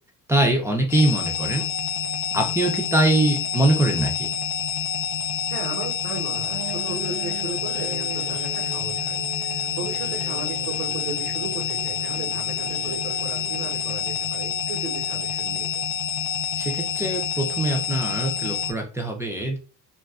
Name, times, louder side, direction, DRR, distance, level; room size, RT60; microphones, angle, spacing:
voice 1, 0.3-1.6 2.3-4.3 16.5-19.6, right 1 dB, 10° right, 1 dB, 0.5 m, -23 dB
sound 1, 0.9-18.7, left 8 dB, 75° left, 0.5 m, -28 dB
voice 2, 5.5-15.8, right 5 dB, 80° right, -3 dB, 1.0 m, -36 dB
sound 2, 6.3-14.0, right 7 dB, 65° right, 0.6 m, -40 dB
2.4 x 2.3 x 2.3 m, 0.34 s
cardioid pair, 120°, 36 cm